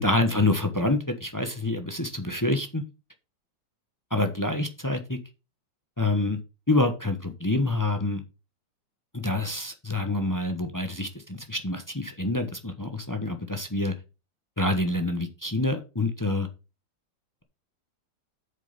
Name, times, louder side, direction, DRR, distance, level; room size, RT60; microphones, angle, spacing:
voice 1, 0.0-2.8 4.1-5.2 6.0-6.4 6.7-8.2 9.1-13.9 14.6-16.5, left 2 dB, 15° left, 7 dB, 0.7 m, -27 dB
8.5 x 6.8 x 5.1 m, 0.30 s
omnidirectional pair, 2.1 m